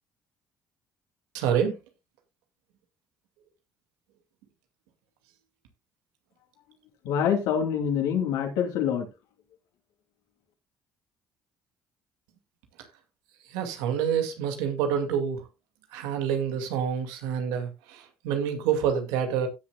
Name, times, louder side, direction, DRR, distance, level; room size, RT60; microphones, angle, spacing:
voice 1, 1.3-1.8 13.5-15.4 15.9-19.5, right 8 dB, 90° right, 2.3 m, -27 dB
voice 2, 7.0-9.1, left 8 dB, 85° left, 2.7 m, -25 dB
17.0 x 7.0 x 2.4 m
supercardioid pair, 70°, 7 cm